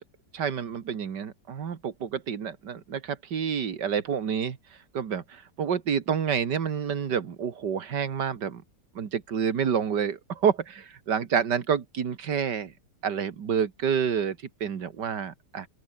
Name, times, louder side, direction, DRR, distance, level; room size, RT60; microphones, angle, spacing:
voice 1, 0.3-4.6 4.9-8.6 9.0-12.7 13.0-15.7, right 7 dB, 90° right, 2.3 m, -28 dB
open air
omnidirectional pair, 1.8 m